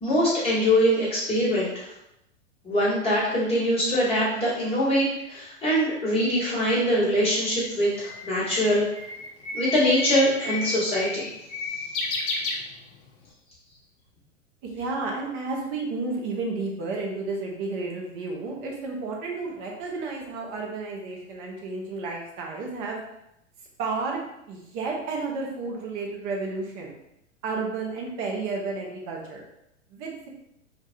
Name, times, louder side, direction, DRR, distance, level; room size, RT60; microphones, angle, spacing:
voice 1, 0.0-1.9 2.6-8.9 9.5-11.3, equal, 15° left, -8 dB, 1.1 m, -23 dB
Bird, 7.0-13.2, left 3 dB, 45° left, 0.5 m, -33 dB
voice 2, 14.6-23.0 23.8-24.2 24.5-26.9 27.4-29.4 29.9-30.3, right 3 dB, 20° right, -1 dB, 0.4 m, -32 dB
2.2 x 2.2 x 2.6 m, 0.83 s
figure-of-eight pair, 100°, 39 cm